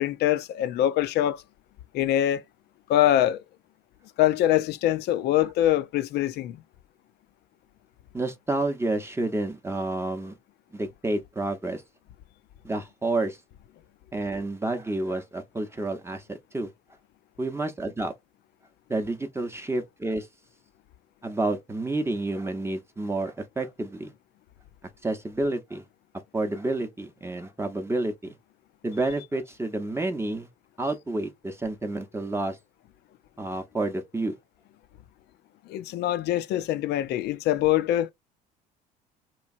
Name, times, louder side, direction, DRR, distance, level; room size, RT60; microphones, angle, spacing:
voice 1, 0.0-1.4 1.9-2.4 2.9-3.4 4.2-6.6 35.7-38.1, left 12 dB, 55° left, 0.4 m, -24 dB
voice 2, 8.1-10.4 10.7-11.8 12.6-13.4 14.1-16.7 17.4-18.1 18.9-20.3 21.2-24.1 25.0-25.8 26.3-28.3 28.8-30.5 30.8-32.6 33.4-34.3, right 2 dB, 10° right, 0.7 m, -29 dB
3.0 x 2.3 x 2.6 m
hypercardioid pair, 65°, 21 cm